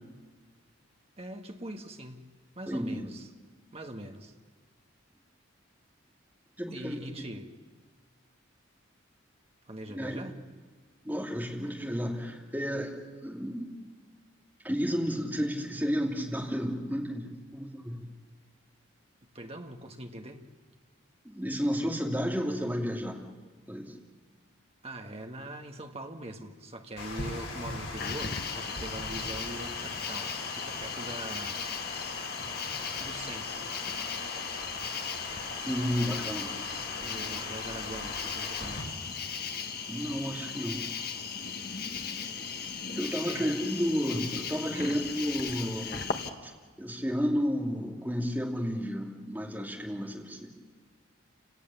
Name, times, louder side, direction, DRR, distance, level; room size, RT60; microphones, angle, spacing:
voice 1, 1.2-3.2 3.7-4.3 6.7-7.5 9.7-10.4 19.3-20.4 24.8-31.6 33.0-33.7 37.0-39.0 43.2-43.5 44.7-45.0, right 1 dB, 30° right, 4 dB, 1.5 m, -42 dB
voice 2, 2.7-3.1 6.6-7.0 9.9-10.4 11.0-13.7 14.6-18.1 21.2-23.2 23.7-24.0 35.7-36.6 39.9-40.8 42.9-46.2 46.4-46.5 46.8-50.5, equal, 10° right, -1 dB, 2.8 m, -32 dB
Water, 27.0-38.8, left 3 dB, 65° left, 4.9 m, -40 dB
Cricket, 28.0-46.3, left 6 dB, 45° left, 1.3 m, -37 dB
29.0 x 18.0 x 7.1 m, 1.5 s
head